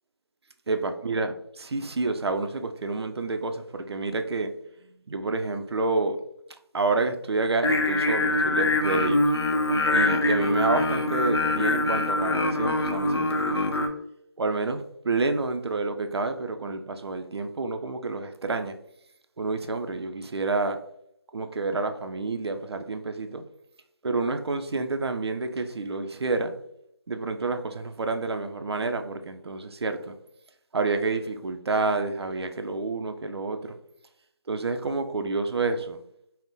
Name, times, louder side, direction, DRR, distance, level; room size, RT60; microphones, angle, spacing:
voice 1, 0.7-4.5 4.8-6.2 6.7-9.2 9.9-13.7 14.4-18.8 19.4-20.8 21.3-23.4 24.0-26.5 27.1-30.1 30.7-33.8 34.5-36.0, right 3 dB, 75° right, 7 dB, 0.4 m, -29 dB
Singing, 7.6-13.9, left 2 dB, 75° left, 0.5 m, -24 dB
3.6 x 2.0 x 2.6 m, 0.76 s
figure-of-eight pair, 165°, 14 cm